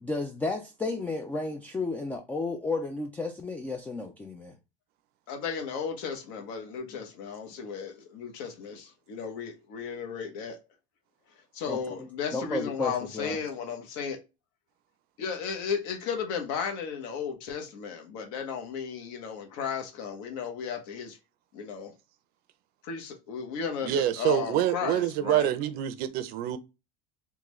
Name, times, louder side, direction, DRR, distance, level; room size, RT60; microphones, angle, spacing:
voice 1, 0.0-4.6 11.7-13.4, left 3 dB, 10° left, 0.3 m, -33 dB
voice 2, 5.3-10.6 11.5-14.2 15.2-21.2 21.5-21.9 22.8-25.5, left 6 dB, 65° left, 1.0 m, -34 dB
voice 3, 23.8-26.6, right 11 dB, 50° right, 0.5 m, -26 dB
3.6 x 2.3 x 3.1 m
supercardioid pair, 130°, 19 cm